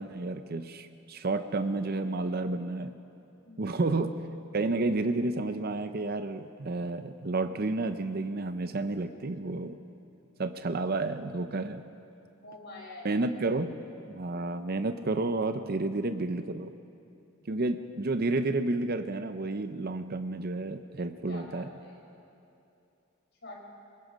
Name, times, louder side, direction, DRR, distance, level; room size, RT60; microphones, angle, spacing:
voice 1, 0.0-2.9 3.6-4.2 4.5-9.8 10.4-11.8 13.0-13.8 14.1-16.7 17.5-21.7, right 2 dB, 45° right, 9 dB, 0.6 m, -31 dB
voice 2, 3.4-3.8 12.1-13.2 21.3-22.0 23.4-23.6, left 2 dB, 55° left, -2 dB, 5.0 m, -47 dB
23.5 x 21.5 x 5.2 m, 2.7 s
head